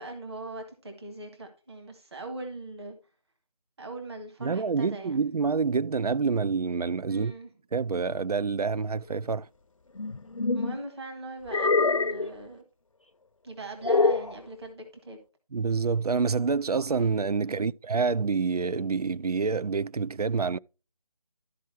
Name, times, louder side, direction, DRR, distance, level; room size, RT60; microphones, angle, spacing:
voice 1, 0.0-3.0 3.8-5.2 7.1-7.5 10.5-12.6 13.4-15.2 17.4-17.7, right 2 dB, 45° right, 1.7 m, -41 dB
voice 2, 4.4-7.3 7.7-9.5 15.5-20.6, right 5 dB, 75° right, 0.4 m, -27 dB
sound 1, 10.0-10.8 11.5-12.3 13.8-14.3, left 3 dB, 55° left, 0.6 m, -24 dB
13.0 x 4.8 x 4.6 m
figure-of-eight pair, 160°, 20 cm